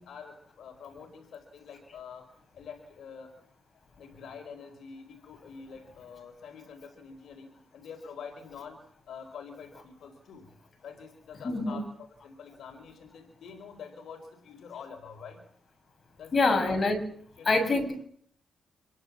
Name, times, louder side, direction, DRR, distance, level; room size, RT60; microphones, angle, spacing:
voice 1, 0.0-2.3 2.5-3.3 4.0-8.8 9.1-10.5 10.8-11.9 12.2-15.4 16.2-16.6 17.4-17.5, left 6 dB, 75° left, 5 dB, 4.8 m, -46 dB
voice 2, 11.4-11.8 16.3-17.0 17.5-18.0, left 3 dB, 40° left, 6 dB, 6.9 m, -25 dB
26.5 x 22.5 x 7.5 m, 0.62 s
cardioid pair, 110°, 0 cm